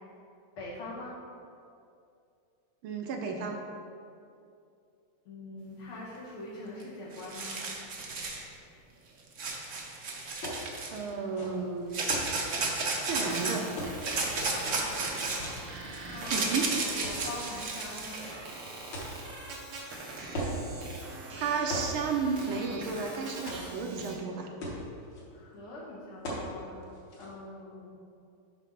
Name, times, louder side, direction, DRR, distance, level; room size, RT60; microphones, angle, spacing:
voice 1, 0.6-1.1 5.2-7.6 14.6-16.5 16.9-18.2 25.3-26.8 27.2-27.9, left 2 dB, 85° left, -8 dB, 2.9 m, -43 dB
voice 2, 2.8-3.6 10.9-12.0 13.0-13.7 16.3-16.7 21.4-24.5, right 5 dB, 75° right, 3 dB, 1.5 m, -32 dB
sound 1, 6.8-6.9 7.1-8.4 9.4-11.0 11.9-13.6 14.0-18.2, right 3 dB, 55° right, 0.8 m, -33 dB
sound 2, 10.4-10.7 11.2-12.3 12.9-13.1 13.8-14.7 15.4-16.6 17.0-17.5 18.2-19.8 20.3-20.6 21.0-21.2 21.7-21.9 22.2-23.0 23.5-24.0 24.3-24.4 24.6-25.2 26.2-26.5 26.8-27.3, equal, 60° left, 1.9 m, -39 dB
sound 3, 12.7-24.2, right 2 dB, 90° right, 2.1 m, -43 dB
7.0 x 4.1 x 5.7 m, 2.5 s
omnidirectional pair, 2.4 m